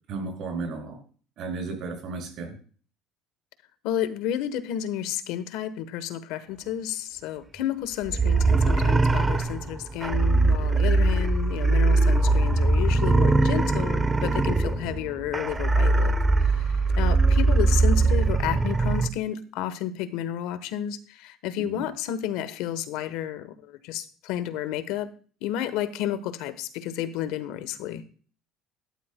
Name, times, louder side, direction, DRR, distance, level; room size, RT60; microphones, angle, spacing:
voice 1, 0.1-1.0 1.4-2.6 21.6-21.9, right 3 dB, 55° right, 3 dB, 5.9 m, -34 dB
voice 2, 3.8-16.1 16.4-25.1 25.4-28.0, left 11 dB, 80° left, 14 dB, 1.1 m, -31 dB
sound 1, 8.1-19.1, right 3 dB, 15° right, 0.6 m, -21 dB
13.5 x 11.5 x 2.2 m, 0.41 s
cardioid pair, 145°, 0 cm